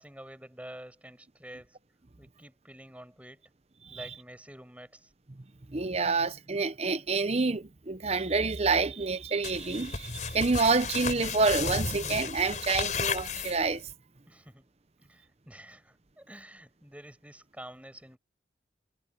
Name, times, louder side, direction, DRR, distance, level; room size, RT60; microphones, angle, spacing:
voice 1, 0.0-1.8 2.2-3.5 3.9-5.1 14.3-14.7 15.0-18.2, right 1 dB, 5° right, 7.4 m, -48 dB
voice 2, 5.7-13.9, right 4 dB, 35° right, 0.8 m, -28 dB
sound 1, 9.4-13.9, left 5 dB, 40° left, 4.7 m, -34 dB
head